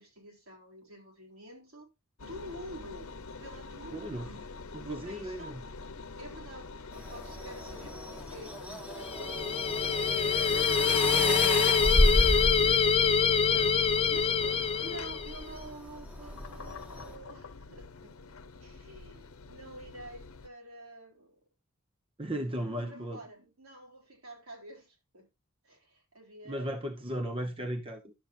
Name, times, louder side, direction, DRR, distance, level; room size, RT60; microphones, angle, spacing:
voice 1, 0.0-1.9 2.2-4.5 4.8-5.5 6.2-6.7 7.1-8.6 9.0-11.9 13.3-21.3 22.5-25.3 25.6-27.1, right 1 dB, 80° right, 3.8 m, -49 dB
Engine, 2.2-20.5, left 4 dB, 85° left, 0.8 m, -46 dB
voice 2, 3.9-4.3 4.7-5.6 13.5-13.7 22.2-23.2 26.5-28.1, equal, 25° right, 0.9 m, -36 dB
sound 1, 6.9-17.1, left 1 dB, 5° right, 1.2 m, -33 dB
sound 2, 9.0-15.4, left 6 dB, 25° left, 0.4 m, -25 dB
12.0 x 7.2 x 2.6 m
head